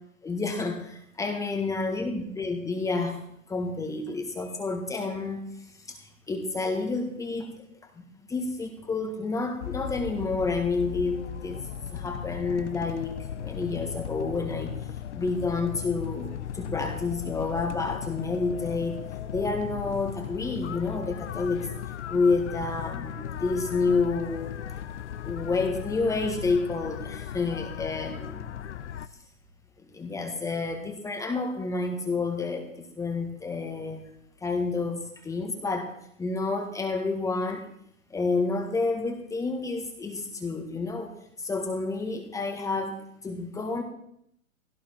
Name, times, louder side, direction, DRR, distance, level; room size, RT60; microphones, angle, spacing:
voice 1, 0.2-3.2 3.5-5.4 6.3-7.5 8.0-8.1 8.3-11.6 11.9-14.7 15.1-19.0 19.3-21.6 22.1-24.5 25.2-28.4 29.9-32.7 32.9-34.0 34.4-35.9 36.2-37.6 38.1-41.1 41.4-43.0 43.2-43.8, left 3 dB, 10° left, 3 dB, 1.5 m, -29 dB
sound 1, 9.6-29.1, left 9 dB, 55° left, 1.0 m, -37 dB
17.5 x 17.0 x 4.5 m, 0.72 s
hypercardioid pair, 135°, 41 cm